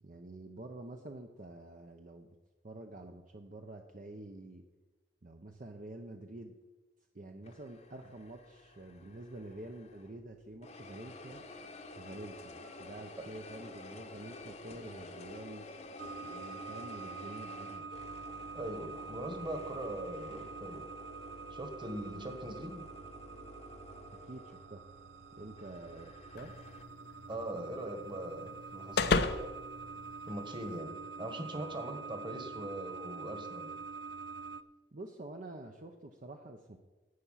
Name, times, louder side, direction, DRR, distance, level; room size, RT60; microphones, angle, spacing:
voice 1, 0.0-2.3 2.6-4.6 5.2-6.6 7.1-11.4 11.9-15.7 16.2-17.9 22.1-22.4 24.3-24.9 25.4-26.5 34.9-36.8, right 2 dB, 45° right, 4 dB, 0.7 m, -48 dB
sound 1, 7.4-10.2 10.6-26.8, left 2 dB, 40° left, 0.9 m, -51 dB
sound 2, 16.0-34.6, right 5 dB, 90° right, 0.6 m, -46 dB
voice 2, 18.5-20.8 21.5-22.8 27.3-29.2 30.2-33.8, right 1 dB, 25° right, 6 dB, 1.5 m, -41 dB
sound 3, 26.4-30.8, left 3 dB, 65° left, 0.7 m, -36 dB
11.5 x 8.2 x 5.7 m, 1.2 s
head